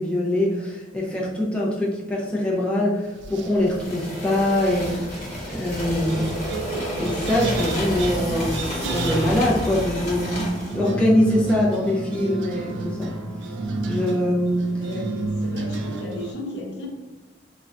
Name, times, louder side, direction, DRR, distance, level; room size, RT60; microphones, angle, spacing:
voice 1, 0.0-5.1 5.5-6.3 6.7-13.2 13.9-14.7, left 1 dB, 5° left, -5 dB, 0.4 m, -23 dB
sound 1, 3.1-3.7 4.7-16.3, right 2 dB, 80° right, 0.4 m, -31 dB
sound 2, 3.7-10.8, equal, 40° left, 1.0 m, -31 dB
voice 2, 14.8-16.9, left 1 dB, 75° left, -1 dB, 0.6 m, -34 dB
3.7 x 2.1 x 2.4 m, 1.2 s
head